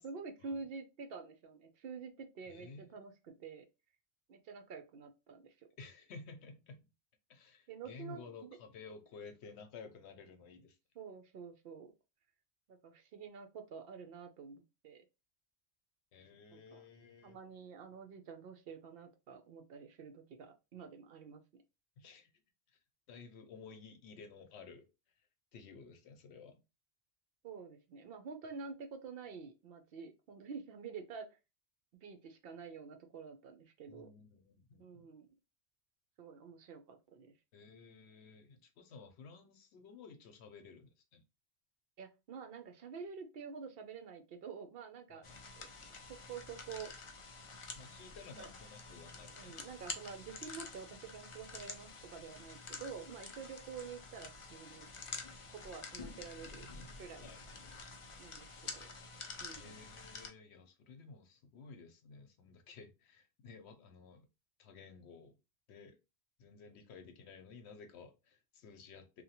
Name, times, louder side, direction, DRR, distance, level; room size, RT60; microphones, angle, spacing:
voice 1, 0.0-3.1 3.4-3.7 4.3-5.5 7.7-8.6 10.9-11.9 12.7-15.1 16.5-16.8 17.2-21.4 27.4-31.3 32.0-34.1 34.8-35.3 36.2-37.3 42.0-45.3 45.6-45.7 46.1-46.9 48.4-48.5 49.3-54.9 55.5-56.7 57.0-57.3 58.2-58.9 59.4-59.7, right 5 dB, 65° right, 0.7 m, -48 dB
voice 2, 2.5-3.1 5.8-6.9 7.3-10.8 16.1-17.4 22.0-22.3 23.1-24.9 25.5-26.6 33.9-35.1 37.5-41.2 45.1-45.4 47.7-49.7 57.2-57.4 59.5-64.3 64.6-65.4 65.7-66.0 66.4-69.2, left 4 dB, 80° left, 0.9 m, -54 dB
sound 1, 45.2-60.3, left 4 dB, 55° left, 0.3 m, -49 dB
2.8 x 2.2 x 2.8 m
omnidirectional pair, 1.1 m